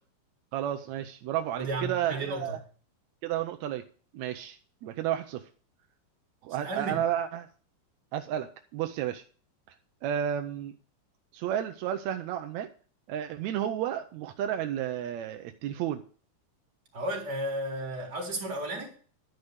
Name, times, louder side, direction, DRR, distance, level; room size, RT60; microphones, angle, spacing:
voice 1, 0.5-2.6 3.2-3.8 4.1-5.4 6.4-7.5 8.1-9.2 10.0-10.7 11.3-12.7 13.1-16.0, right 10 dB, 80° right, 1.6 m, -32 dB
voice 2, 1.6-2.4 6.6-7.0 16.9-18.9, right 1 dB, 30° right, 3.9 m, -33 dB
12.0 x 5.3 x 8.0 m
omnidirectional pair, 3.9 m